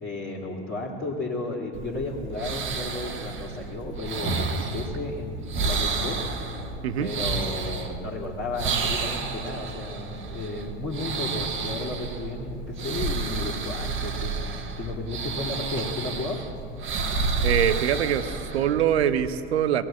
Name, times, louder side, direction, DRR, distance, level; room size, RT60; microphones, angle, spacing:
voice 1, 0.0-6.2 7.0-16.4, left 3 dB, 30° left, -7 dB, 2.5 m, -33 dB
sound 1, 1.7-19.3, right 4 dB, 35° right, 1.5 m, -31 dB
voice 2, 17.4-19.9, right 9 dB, 70° right, 13 dB, 0.8 m, -24 dB
19.5 x 7.7 x 8.6 m, 2.7 s
figure-of-eight pair, 70°, 33 cm